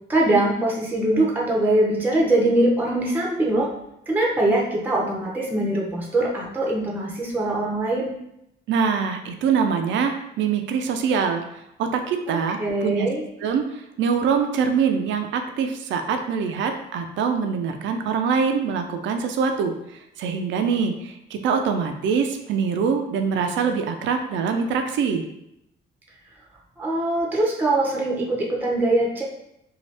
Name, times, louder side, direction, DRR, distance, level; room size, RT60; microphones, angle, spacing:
voice 1, 0.1-3.7 4.1-8.1 12.3-13.2 26.8-29.2, right 1 dB, 10° right, -2 dB, 0.6 m, -22 dB
voice 2, 8.7-13.1 13.4-19.8 20.2-25.2, right 6 dB, 70° right, 5 dB, 0.4 m, -24 dB
2.6 x 2.3 x 3.2 m, 0.82 s
cardioid pair, 90°, 20 cm